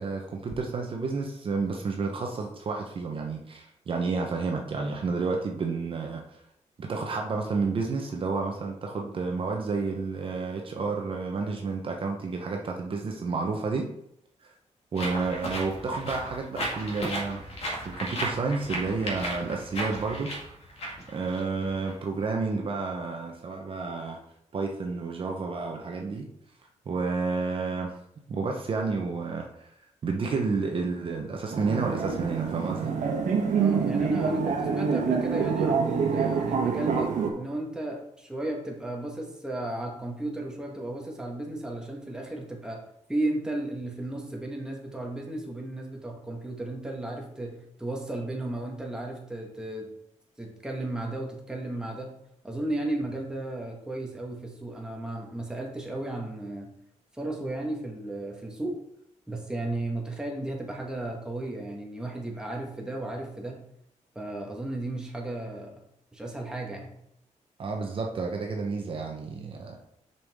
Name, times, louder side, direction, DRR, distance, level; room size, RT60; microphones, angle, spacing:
voice 1, 0.0-6.4 6.8-13.9 14.4-14.5 14.9-17.4 17.7-20.5 21.1-24.2 24.5-26.3 26.9-27.9 28.3-29.5 30.0-32.9 67.6-69.8, right 4 dB, 45° right, 1 dB, 0.8 m, -30 dB
sound 1, 15.0-21.9, equal, 55° left, 2.0 m, -35 dB
sound 2, 31.5-37.3, right 5 dB, 85° right, 1.1 m, -26 dB
voice 2, 33.6-42.8 43.1-49.9 50.4-52.2 52.4-56.7 57.1-58.8 59.3-63.6 64.1-65.8 66.1-67.0, right 1 dB, 5° right, -1 dB, 1.3 m, -34 dB
6.7 x 5.5 x 3.5 m, 0.76 s
wide cardioid pair, 140°, 13 cm